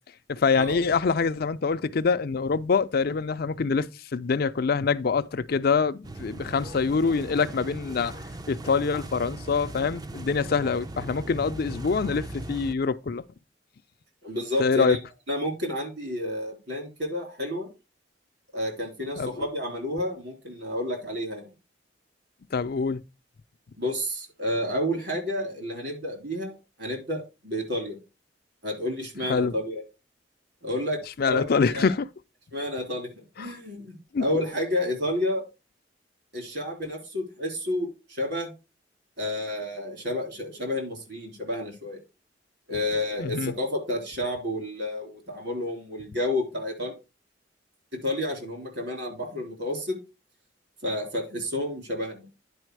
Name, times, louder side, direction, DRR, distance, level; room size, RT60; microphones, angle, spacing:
voice 1, 0.3-3.9 4.1-8.2 8.5-13.2 14.6-15.0 19.2-19.5 22.5-23.0 29.3-29.5 31.2-32.0 33.4-33.5 34.1-34.2 43.2-43.5, left 5 dB, 55° left, 0.5 m, -25 dB
sound 1, 6.0-12.7, right 1 dB, 20° right, 0.5 m, -39 dB
voice 2, 14.2-15.0 15.3-17.7 18.5-21.5 23.8-28.0 28.6-29.8 30.6-31.9 32.5-35.4 36.3-38.5 39.2-42.0 42.7-46.9 48.0-50.0 50.8-52.3, left 1 dB, 65° right, 3.5 m, -30 dB
9.9 x 4.9 x 4.6 m
head